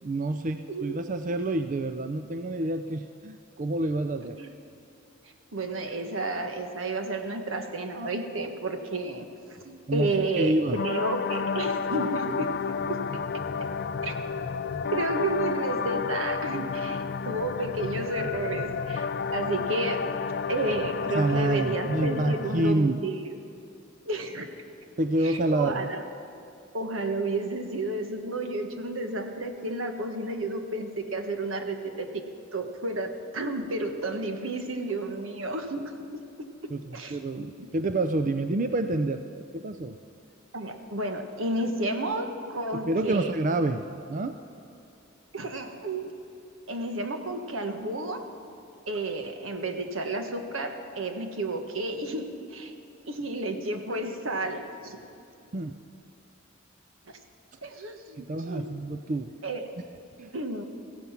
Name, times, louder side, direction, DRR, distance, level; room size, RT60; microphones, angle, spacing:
voice 1, 0.0-4.4 9.9-10.8 21.1-23.0 25.0-25.9 36.7-40.0 42.7-44.4 55.5-55.8 58.2-59.3 60.2-60.3, right 2 dB, 40° right, 9 dB, 0.5 m, -28 dB
voice 2, 0.7-1.0 4.4-4.5 5.5-9.3 9.6-12.5 12.9-13.0 14.0-14.1 14.9-20.0 20.5-23.2 24.1-24.5 25.2-26.0 26.7-32.2 32.5-35.9 36.9-37.2 37.6-37.7 38.8-38.9 40.5-43.3 45.3-46.1 46.7-48.2 48.9-52.7 53.1-55.0 57.6-58.2 58.5-58.8 59.4-59.7 60.3-60.6, right 2 dB, 80° right, 5 dB, 1.4 m, -31 dB
sound 1, 10.7-22.7, left 5 dB, 55° left, 0.4 m, -31 dB
15.5 x 15.5 x 5.8 m, 2.7 s
head